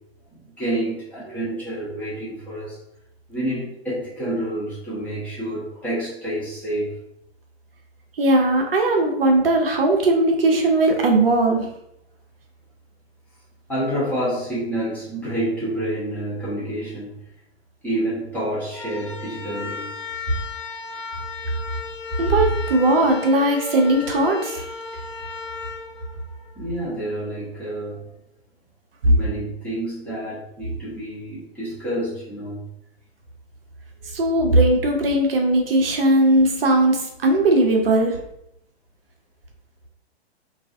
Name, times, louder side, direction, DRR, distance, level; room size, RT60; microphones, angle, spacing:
voice 1, 0.3-2.8 3.3-6.9 13.7-17.2 17.8-19.9 26.6-28.1 29.0-32.7, right 1 dB, 5° left, -10 dB, 0.7 m, -28 dB
voice 2, 8.2-11.6 22.2-24.6 34.1-38.2, right 2 dB, 60° right, 2 dB, 0.6 m, -18 dB
sound 1, 18.7-26.8, left 5 dB, 30° left, 0.3 m, -35 dB
2.4 x 2.3 x 2.4 m, 0.77 s
figure-of-eight pair, 125°, 33 cm